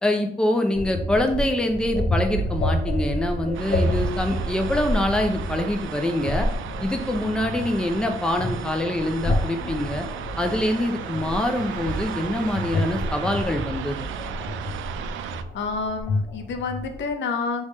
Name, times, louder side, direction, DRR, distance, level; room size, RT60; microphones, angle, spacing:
voice 1, 0.0-6.5 6.8-10.0 10.4-14.1, left 1 dB, 5° left, 4 dB, 0.6 m, -25 dB
sound 1, 0.7-17.1, left 1 dB, 40° left, 0.9 m, -29 dB
sound 2, 2.3-13.4, right 4 dB, 45° right, 1.2 m, -38 dB
sound 3, 3.5-15.4, right 9 dB, 75° right, 0.4 m, -35 dB
voice 2, 15.5-17.6, left 4 dB, 65° left, 6 dB, 0.7 m, -28 dB
3.5 x 3.1 x 4.2 m, 0.69 s
cardioid pair, 90°, 20 cm